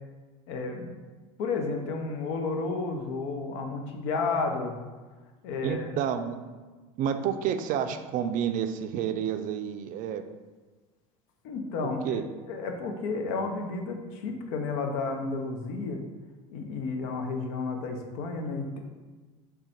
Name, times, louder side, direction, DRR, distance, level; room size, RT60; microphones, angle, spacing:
voice 1, 0.5-0.9 1.4-4.8 5.4-5.9 11.4-12.2 12.5-16.0 16.5-18.8, left 3 dB, 70° left, 4 dB, 0.6 m, -32 dB
voice 2, 5.6-6.4 7.0-10.2 12.0-12.2, right 8 dB, 50° right, 9 dB, 0.4 m, -29 dB
3.7 x 2.2 x 4.3 m, 1.3 s
hypercardioid pair, 85°, 17 cm